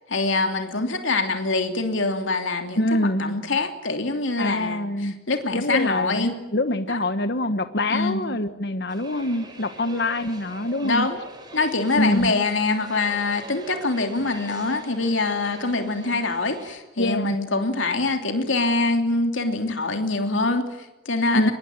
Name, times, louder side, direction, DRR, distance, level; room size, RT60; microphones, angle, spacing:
voice 1, 0.1-2.9 3.2-6.3 6.9-7.0 7.9-8.2 9.9-10.0 10.8-11.3 11.5-21.5, left 3 dB, 80° left, 5 dB, 3.1 m, -24 dB
voice 2, 2.8-3.4 4.4-5.1 5.5-11.1 11.9-12.3 17.0-17.4 21.3-21.5, left 1 dB, 55° left, 10 dB, 1.3 m, -25 dB
sound 1, 8.9-16.8, right 1 dB, 20° right, 4.9 m, -43 dB
24.0 x 21.5 x 9.2 m, 1.1 s
head